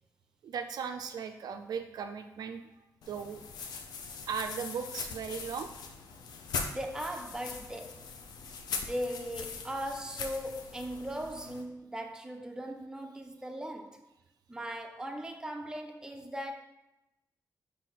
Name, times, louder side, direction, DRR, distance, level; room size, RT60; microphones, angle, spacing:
voice 1, 0.4-2.7 3.1-3.4 4.3-5.7, right 6 dB, 75° right, 0.3 m, -37 dB
sound 1, 3.0-11.6, left 5 dB, 90° left, 0.4 m, -41 dB
voice 2, 6.7-8.1 8.7-14.1 14.5-16.5, equal, 10° right, 0.5 m, -38 dB
4.2 x 2.6 x 3.9 m
cardioid pair, 75°, 7 cm